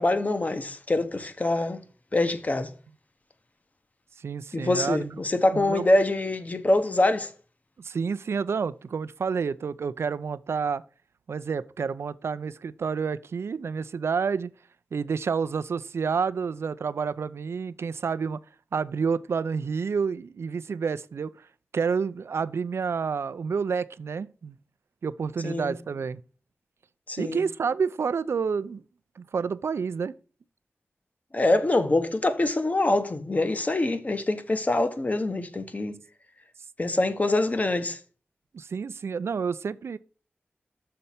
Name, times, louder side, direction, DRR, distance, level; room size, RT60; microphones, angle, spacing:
voice 1, 0.0-1.8 2.1-2.7 4.5-7.3 25.4-25.7 27.1-27.4 31.3-36.0 36.8-38.0, left 2 dB, 35° left, 0.9 m, -24 dB
voice 2, 4.2-5.1 5.5-5.9 7.8-10.8 11.3-14.5 14.9-18.4 18.7-21.5 21.7-24.6 25.0-26.2 27.2-28.8 29.2-30.1 38.5-40.0, right 5 dB, 85° right, 0.4 m, -29 dB
6.6 x 4.2 x 5.7 m
wide cardioid pair, 80°, 4 cm